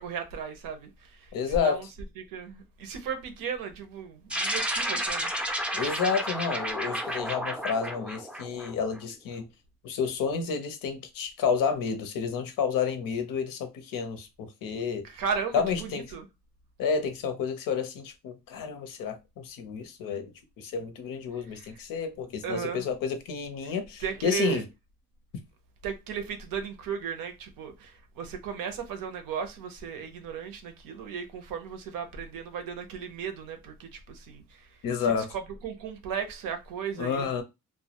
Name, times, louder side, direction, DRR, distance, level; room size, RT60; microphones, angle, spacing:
voice 1, 0.0-1.9 2.2-5.3 5.8-6.0 15.0-16.3 21.5-21.7 22.4-22.9 23.6-23.7 24.0-24.6 25.8-37.4, right 6 dB, 90° right, 0.6 m, -36 dB
voice 2, 1.3-1.8 5.7-9.5 9.8-15.1 15.5-16.0 16.8-24.6 34.8-35.3 37.0-37.4, left 6 dB, 85° left, 0.6 m, -30 dB
sound 1, 4.3-9.0, equal, 5° right, 0.4 m, -31 dB
2.2 x 2.0 x 2.8 m
cardioid pair, 95°, 32 cm